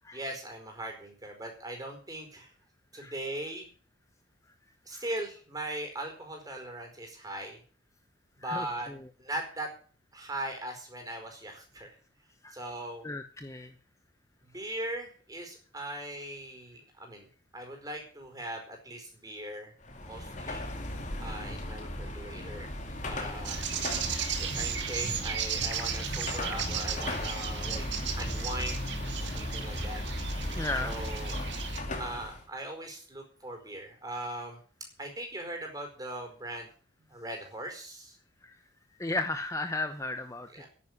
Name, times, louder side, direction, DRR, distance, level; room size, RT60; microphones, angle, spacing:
voice 1, 0.1-2.5 2.9-3.7 4.8-7.6 8.4-8.9 9.2-9.7 10.1-12.0 12.5-13.1 14.4-17.3 17.5-19.7 20.0-20.7 21.2-22.7 23.0-23.6 24.1-27.8 28.2-28.9 29.3-30.0 30.7-31.4 32.0-34.6 35.0-36.7 37.1-38.2 40.4-40.7, right 1 dB, 20° right, 3 dB, 4.8 m, -39 dB
voice 2, 8.4-9.1 12.4-12.5 13.0-13.7 30.5-30.9 38.4-38.6 39.0-40.7, left 2 dB, 15° left, 8 dB, 0.8 m, -35 dB
Car passing by / Traffic noise roadway noise / Engine, 19.8-32.4, left 1 dB, 40° left, 2.5 m, -36 dB
sound 1, 23.4-31.8, right 7 dB, 65° right, 2.1 m, -36 dB
10.5 x 9.8 x 9.7 m, 0.42 s
head